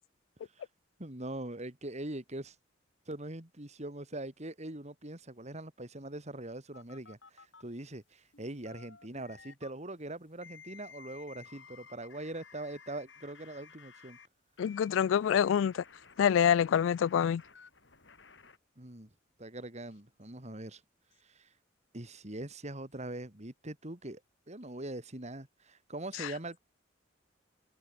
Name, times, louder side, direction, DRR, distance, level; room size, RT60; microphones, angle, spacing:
voice 1, 1.0-2.5 3.1-14.2 18.8-19.1 19.4-20.8 21.2-21.5 21.9-24.2 24.5-26.6, right 1 dB, 35° right, 3.1 m, -42 dB
sound 1, 6.7-7.6 8.3-9.7 10.4-14.3 14.6-18.6, left 6 dB, 70° left, 6.7 m, -55 dB
voice 2, 14.6-15.8 16.2-17.4 26.2-26.3, left 8 dB, 90° left, 0.3 m, -26 dB
open air
head